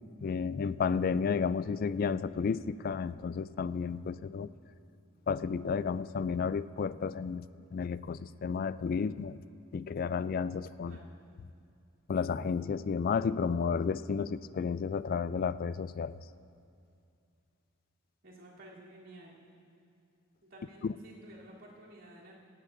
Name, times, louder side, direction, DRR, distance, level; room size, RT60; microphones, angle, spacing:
voice 1, 0.2-4.5 5.3-7.5 7.7-9.4 9.7-11.0 12.1-16.2 20.8-20.9, left 5 dB, 45° left, 15 dB, 0.3 m, -32 dB
voice 2, 10.8-11.2 18.2-19.4 20.4-22.3, right 1 dB, 70° right, -6 dB, 3.2 m, -53 dB
17.5 x 16.5 x 2.6 m, 2.4 s
head